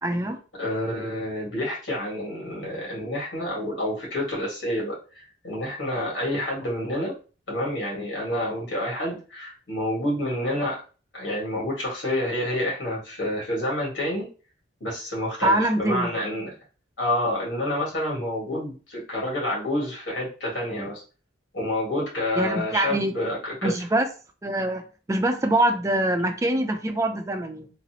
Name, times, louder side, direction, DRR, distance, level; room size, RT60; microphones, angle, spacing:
voice 1, 0.0-0.4 15.4-16.1 22.4-23.2 23.6-24.1 24.4-27.7, right 1 dB, 15° right, 5 dB, 0.4 m, -24 dB
voice 2, 0.6-7.1 7.5-10.8 11.1-14.3 14.8-16.6 17.0-21.0 21.5-23.7, left 1 dB, 75° left, -3 dB, 1.7 m, -28 dB
3.9 x 2.0 x 2.8 m, 0.35 s
head